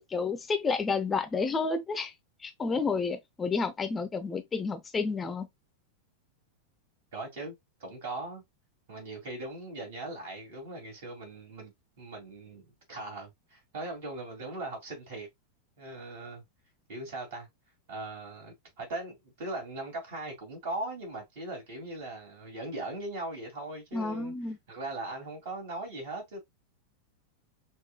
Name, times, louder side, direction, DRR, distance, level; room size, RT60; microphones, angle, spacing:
voice 1, 0.0-2.1 2.4-5.5 23.9-24.6, left 4 dB, 15° left, 0.7 m, -30 dB
voice 2, 7.1-7.5 7.8-8.4 8.9-11.7 12.0-15.3 15.8-16.4 16.9-17.5 17.9-24.3 24.7-26.4, right 2 dB, 50° right, 2.4 m, -39 dB
5.9 x 2.6 x 2.3 m
figure-of-eight pair, 90°, 0 cm